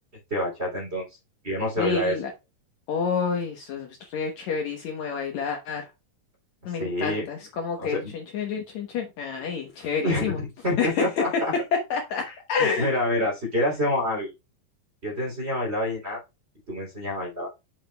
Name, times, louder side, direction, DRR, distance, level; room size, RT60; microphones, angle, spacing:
voice 1, 0.3-1.1 1.4-2.2 6.7-7.3 7.8-8.1 10.0-11.5 12.3-12.4 12.6-14.3 15.0-16.2 16.7-17.5, left 1 dB, 20° right, -4 dB, 3.0 m, -27 dB
voice 2, 1.8-2.3 2.9-5.8 6.7-10.4 10.8-11.0 11.9-12.9, left 6 dB, 65° left, 2 dB, 2.1 m, -29 dB
8.4 x 7.2 x 2.3 m, 0.25 s
omnidirectional pair, 3.9 m